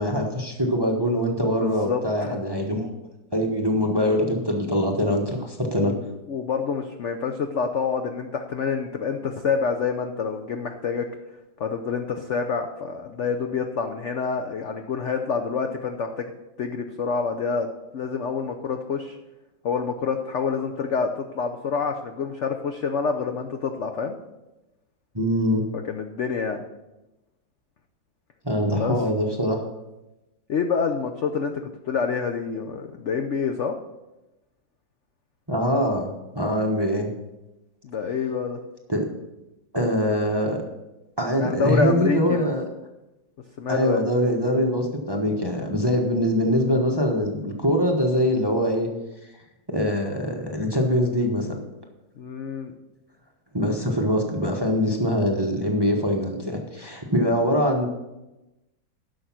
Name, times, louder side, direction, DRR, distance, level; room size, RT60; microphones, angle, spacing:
voice 1, 0.0-2.9 3.3-5.9 25.1-25.7 28.4-29.6 35.5-37.1 38.9-39.0 39.7-40.6 41.2-42.7 43.7-48.9 49.7-51.6 53.5-57.9, equal, 15° right, 1 dB, 1.0 m, -23 dB
voice 2, 1.6-2.4 5.8-6.0 6.3-11.1 11.6-16.3 16.6-17.7 17.9-19.2 19.6-24.2 25.8-26.6 28.8-28.9 30.5-31.5 31.9-33.8 37.8-38.6 41.4-42.5 43.6-44.0 52.2-52.7, left 5 dB, 60° left, 5 dB, 0.8 m, -27 dB
11.0 x 6.5 x 6.1 m, 1.0 s
omnidirectional pair, 2.0 m